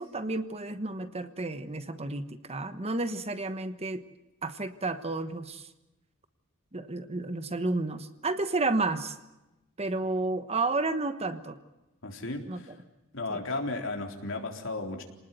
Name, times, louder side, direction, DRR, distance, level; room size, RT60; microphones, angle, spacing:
voice 1, 0.0-4.0 4.4-5.7 6.7-9.2 9.8-11.6 12.5-12.8 13.3-13.4, right 2 dB, 30° right, 10 dB, 1.2 m, -31 dB
voice 2, 12.0-12.7 13.1-15.0, left 2 dB, 65° left, 2 dB, 3.9 m, -34 dB
27.5 x 19.5 x 9.2 m, 1.0 s
head